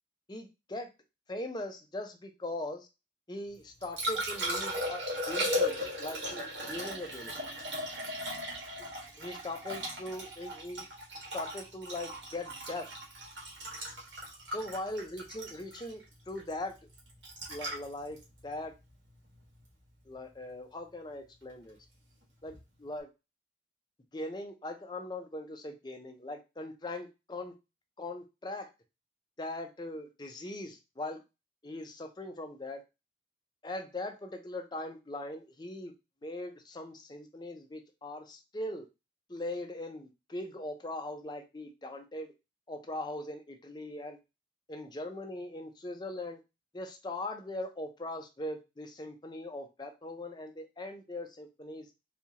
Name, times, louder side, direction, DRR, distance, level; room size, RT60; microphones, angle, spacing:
voice 1, 0.3-0.9 1.3-2.9 3.3-7.3 9.2-10.8 11.3-13.0 14.5-16.8 17.5-18.7 20.1-21.8 22.4-23.1 24.1-27.5 28.0-28.7 29.4-31.2 31.6-32.8 33.6-35.9 36.2-38.9 39.3-42.3 42.7-44.2 44.7-46.4 46.7-51.9, left 1 dB, 25° left, 4 dB, 0.5 m, -40 dB
Liquid, 3.5-19.6 22.5-22.6, equal, 90° right, 1.6 m, -37 dB
4.3 x 2.3 x 2.8 m, 0.25 s
head